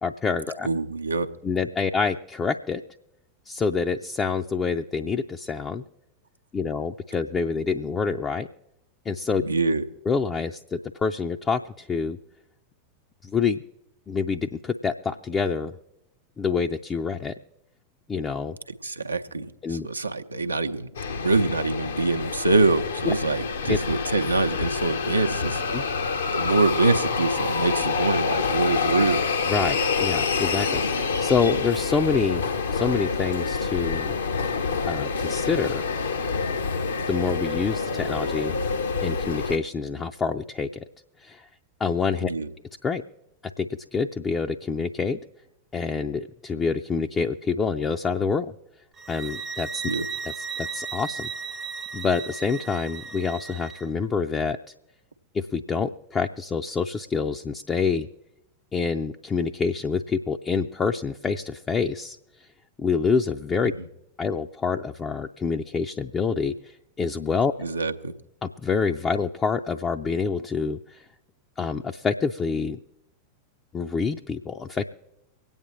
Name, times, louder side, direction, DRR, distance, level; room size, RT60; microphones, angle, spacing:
voice 1, 0.0-0.7 1.4-2.8 3.5-5.8 6.5-8.5 9.1-9.4 10.1-12.2 13.2-13.6 14.1-15.7 16.4-17.3 18.1-18.6 19.6-19.9 23.1-23.2 23.7-23.8 25.7-25.8 29.5-32.4 32.7-34.1 34.8-35.8 37.1-38.5 39.0-40.8 41.2-41.5 41.8-42.3 42.8-43.0 43.6-45.2 45.7-48.5 49.1-49.8 50.2-51.3 51.9-54.6 55.3-58.1 58.7-62.2 62.8-63.7 64.2-67.5 68.4-71.1 71.6-72.8 73.7-74.9, left 5 dB, 20° left, 4 dB, 0.5 m, -27 dB
voice 2, 0.6-1.3 9.3-9.8 18.8-25.6 26.3-29.3 42.2-42.5 49.8-50.1 63.8-63.9 67.6-68.1, right 3 dB, 80° right, 5 dB, 0.7 m, -25 dB
sound 1, 21.0-39.6, left 5 dB, 65° left, 0.9 m, -27 dB
sound 2, 49.0-53.9, right 6 dB, 25° right, 0.7 m, -35 dB
25.0 x 8.8 x 3.1 m, 0.88 s
figure-of-eight pair, 90°, 0 cm